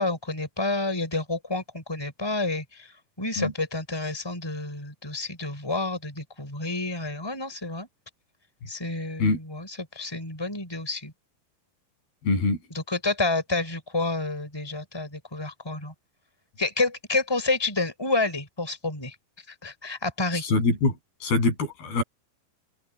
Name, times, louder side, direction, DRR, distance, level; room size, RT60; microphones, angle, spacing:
voice 1, 0.0-7.9 8.7-11.1 12.7-15.9 16.6-19.2 19.6-20.5, left 2 dB, 5° left, 5.6 m, -29 dB
voice 2, 12.2-12.6 20.4-20.9 21.2-22.0, left 3 dB, 80° left, 9.7 m, -23 dB
open air
omnidirectional pair, 4.4 m